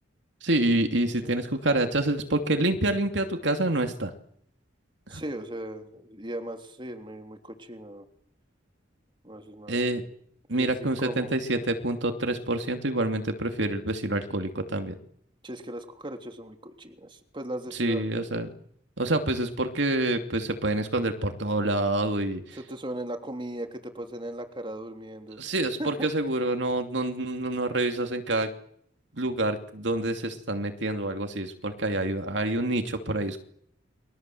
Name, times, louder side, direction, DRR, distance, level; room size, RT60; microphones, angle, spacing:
voice 1, 0.4-4.1 5.1-5.2 9.7-10.0 10.5-15.0 17.7-18.5 19.0-22.6 25.4-28.5 29.1-33.4, right 2 dB, 65° right, 6 dB, 2.8 m, -27 dB
voice 2, 5.1-8.1 9.2-9.8 10.6-11.3 15.4-18.2 22.6-25.4 25.8-26.1, right 1 dB, 25° right, 5 dB, 3.4 m, -38 dB
29.5 x 23.5 x 7.9 m, 0.65 s
head